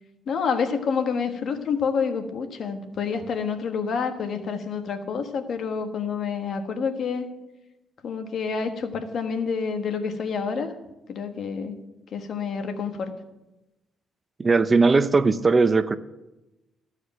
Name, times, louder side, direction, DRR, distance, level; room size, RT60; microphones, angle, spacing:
voice 1, 0.3-7.3 8.0-10.7 11.1-11.8 12.1-13.1, left 6 dB, 60° left, 7 dB, 1.3 m, -28 dB
voice 2, 14.4-16.0, right 4 dB, 30° right, 13 dB, 0.6 m, -19 dB
14.5 x 4.9 x 9.0 m, 1.0 s
cardioid pair, 90°, 0 cm